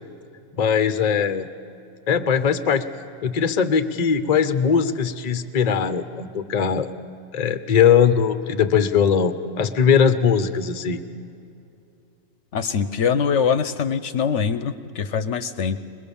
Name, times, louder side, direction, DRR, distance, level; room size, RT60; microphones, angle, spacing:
voice 1, 0.5-1.5 2.1-2.8 3.2-6.9 7.3-11.0, left 7 dB, 40° left, 11 dB, 0.7 m, -20 dB
voice 2, 12.5-15.8, left 6 dB, 65° left, 11 dB, 1.0 m, -23 dB
22.0 x 21.5 x 7.0 m, 2.5 s
omnidirectional pair, 1.4 m